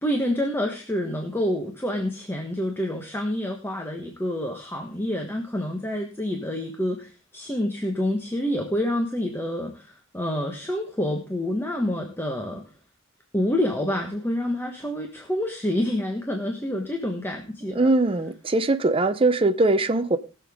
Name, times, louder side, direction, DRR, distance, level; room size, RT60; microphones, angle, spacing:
voice 1, 0.0-12.6 13.3-17.9, left 1 dB, 10° left, 1.4 m, -28 dB
voice 2, 17.7-20.2, right 2 dB, 25° right, 0.7 m, -21 dB
20.0 x 7.0 x 3.6 m
head